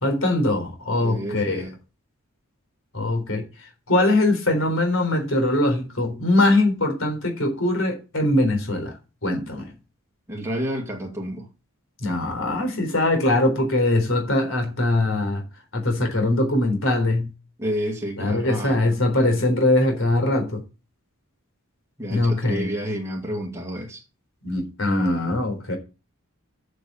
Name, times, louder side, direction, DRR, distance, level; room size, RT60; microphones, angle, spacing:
voice 1, 0.0-1.6 2.9-3.4 3.9-8.9 9.2-9.7 12.0-15.4 15.7-17.3 18.2-20.6 22.1-22.7 24.4-25.8, left 2 dB, 60° left, 4.0 m, -22 dB
voice 2, 1.0-1.8 10.3-11.5 17.6-18.9 19.2-19.5 22.0-24.0, equal, 10° right, 2.2 m, -30 dB
8.4 x 6.6 x 7.2 m
head